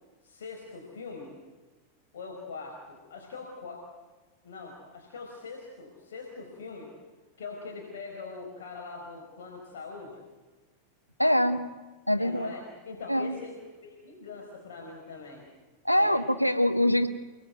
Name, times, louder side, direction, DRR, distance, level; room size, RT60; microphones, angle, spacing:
voice 1, 0.2-1.4 2.1-3.9 4.4-6.9 7.4-10.3 12.2-13.6 13.8-15.5 16.0-16.2, left 4 dB, 60° left, 1 dB, 4.8 m, -42 dB
voice 2, 11.2-11.6 12.1-12.5 13.1-13.4 15.8-17.1, left 1 dB, 90° left, 6 dB, 1.6 m, -24 dB
29.5 x 19.5 x 9.3 m, 1.2 s
figure-of-eight pair, 90°, 0 cm